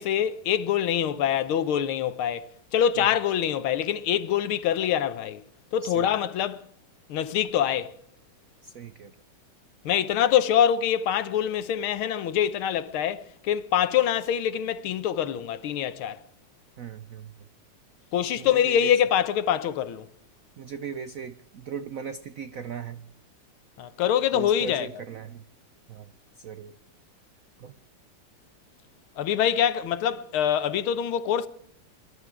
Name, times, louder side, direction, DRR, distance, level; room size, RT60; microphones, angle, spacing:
voice 1, 0.0-5.4 5.7-6.6 7.1-7.9 9.8-16.2 18.1-20.1 23.8-24.9 29.2-31.5, left 9 dB, 75° left, 1.7 m, -25 dB
voice 2, 8.6-9.1 16.8-17.3 18.4-18.9 20.6-23.0 24.3-25.4 25.9-26.7 27.6-27.7, right 7 dB, 80° right, 0.7 m, -38 dB
23.5 x 11.5 x 4.8 m
omnidirectional pair, 2.4 m